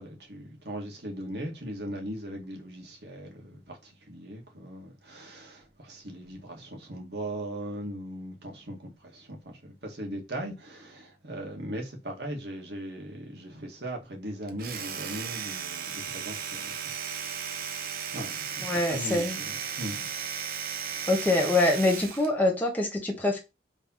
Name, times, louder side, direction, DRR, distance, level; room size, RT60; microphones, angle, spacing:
voice 1, 0.0-16.9 17.2-17.9 18.1-20.0 20.9-21.1, right 1 dB, 70° right, 2.1 m, -39 dB
Domestic sounds home sounds, 14.5-22.3, right 7 dB, 55° right, 0.9 m, -35 dB
voice 2, 18.6-19.4 21.1-23.4, left 2 dB, 10° left, 1.5 m, -25 dB
5.4 x 3.5 x 5.7 m
head